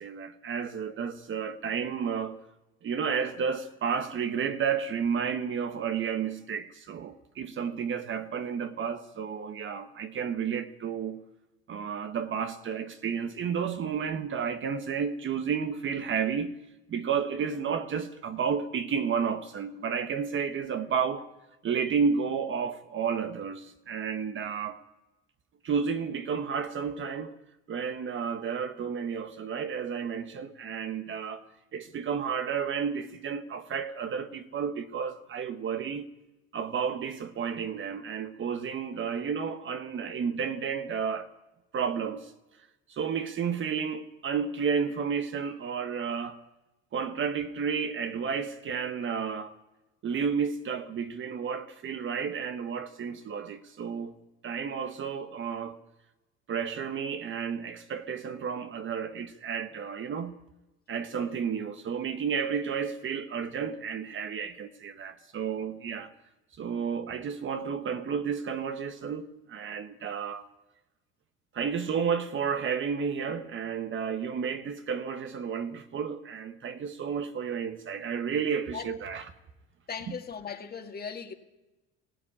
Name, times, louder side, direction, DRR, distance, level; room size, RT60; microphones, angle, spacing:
voice 1, 0.0-2.4 2.8-11.2 11.7-16.6 16.9-21.2 21.6-24.8 25.6-27.4 27.7-31.4 31.7-36.1 36.5-41.3 41.7-42.3 42.9-46.4 46.9-49.5 50.0-54.1 54.4-55.8 56.5-60.4 60.9-66.1 66.6-70.4 71.5-79.2 80.1-80.2, right 6 dB, 35° right, 1.2 m, -31 dB
voice 2, 79.9-81.3, left 6 dB, 30° left, 2.1 m, -38 dB
19.0 x 15.5 x 10.0 m
cardioid pair, 135°, 33 cm